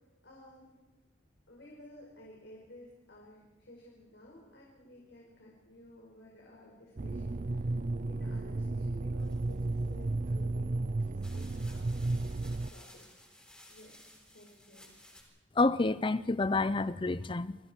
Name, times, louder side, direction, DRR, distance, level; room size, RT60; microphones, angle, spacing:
voice 1, 0.2-0.8 1.5-12.0 12.7-13.4 13.7-14.0 14.3-14.9, left 1 dB, 70° left, 5.2 m, -55 dB
sound 1, 7.0-12.7, right 2 dB, 45° right, 0.6 m, -33 dB
sound 2, 9.2-10.1 10.7-10.8 11.2-15.2, left 1 dB, 5° left, 6.6 m, -56 dB
voice 2, 15.6-17.6, left 3 dB, 25° left, 0.6 m, -28 dB
29.5 x 22.5 x 4.6 m
head